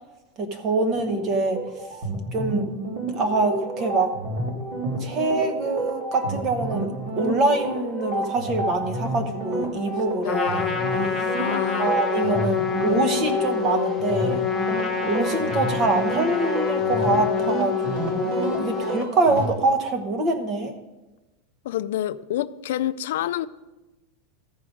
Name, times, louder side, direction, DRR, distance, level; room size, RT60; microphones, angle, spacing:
voice 1, 0.4-1.6 2.3-2.7 3.1-4.1 5.0-10.6 11.8-14.4 15.0-20.7, right 2 dB, 25° right, 0.9 m, -24 dB
sound 1, 0.9-19.5, right 1 dB, 55° right, 2.5 m, -30 dB
voice 2, 10.2-10.8 11.3-11.9 21.6-23.5, left 12 dB, 65° left, 0.3 m, -28 dB
Trumpet, 10.2-19.0, left 7 dB, 10° left, 0.7 m, -27 dB
14.0 x 4.9 x 5.1 m
supercardioid pair, 175°, 0 cm